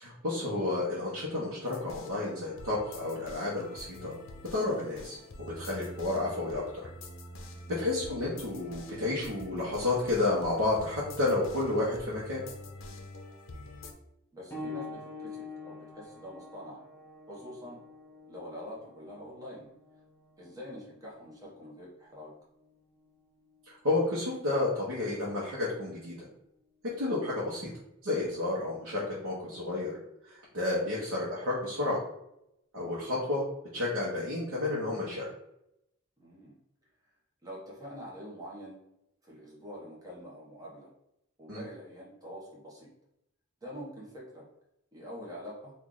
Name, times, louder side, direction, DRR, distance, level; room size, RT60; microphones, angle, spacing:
voice 1, 0.0-4.2 4.5-5.2 5.6-6.8 7.7-12.4 23.7-26.3 27.0-27.7 28.0-29.9 30.2-32.0 32.7-33.4 33.7-35.3 41.5-41.6, left 2 dB, 80° right, -6 dB, 0.9 m, -31 dB
sound 1, 1.7-13.9, left 1 dB, 75° left, 0.5 m, -46 dB
voice 2, 14.3-16.8 17.3-17.8 18.3-19.7 20.4-22.3 30.9-31.1 36.2-36.6 37.4-38.8 39.2-40.9 41.4-42.9 43.6-44.4 44.9-45.7, equal, 15° right, -5 dB, 1.0 m, -45 dB
sound 2, 14.5-24.7 25.7-25.8 26.5-26.6, left 3 dB, 10° left, 0.7 m, -47 dB
3.1 x 2.4 x 3.8 m, 0.83 s
head